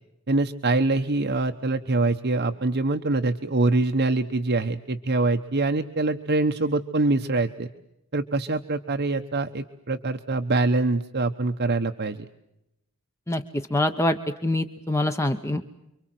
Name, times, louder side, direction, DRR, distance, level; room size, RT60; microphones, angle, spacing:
voice 1, 0.3-7.7 8.1-12.3, right 2 dB, 50° right, 5 dB, 1.0 m, -24 dB
voice 2, 13.7-15.6, left 1 dB, 10° left, 7 dB, 1.0 m, -25 dB
30.0 x 24.0 x 7.8 m, 0.88 s
head